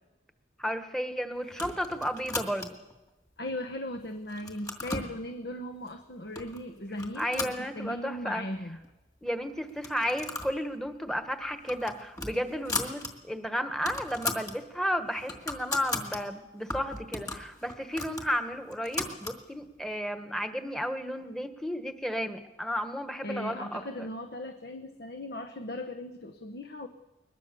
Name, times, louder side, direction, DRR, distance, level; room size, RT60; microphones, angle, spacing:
voice 1, 0.6-2.8 7.2-8.5 9.2-24.1, equal, 5° left, 7 dB, 1.3 m, -33 dB
sound 1, 1.5-2.9 3.5-4.0 4.3-5.1 5.9-6.0 6.4-6.6 7.0-8.2 8.5-8.6 8.8-8.9 9.7-10.6 10.9-11.1 11.5-13.1 13.4-13.5 13.7-14.6 15.0-16.2 16.7-19.4, left 2 dB, 20° left, 2.2 m, -36 dB
voice 2, 3.4-8.8 23.2-26.9, left 1 dB, 60° left, 6 dB, 1.0 m, -38 dB
22.0 x 21.5 x 6.9 m, 1.1 s
head